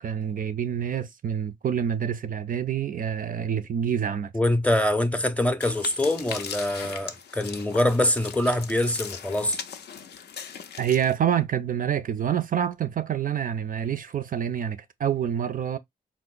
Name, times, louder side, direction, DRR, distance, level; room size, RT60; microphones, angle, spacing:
voice 1, 0.0-4.3 10.8-15.8, right 9 dB, 55° right, 0.4 m, -27 dB
voice 2, 4.3-9.6, left 1 dB, 10° left, 0.6 m, -24 dB
sound 1, 5.6-11.1, left 7 dB, 75° left, 0.4 m, -39 dB
3.9 x 2.1 x 2.4 m
cardioid pair, 55°, 17 cm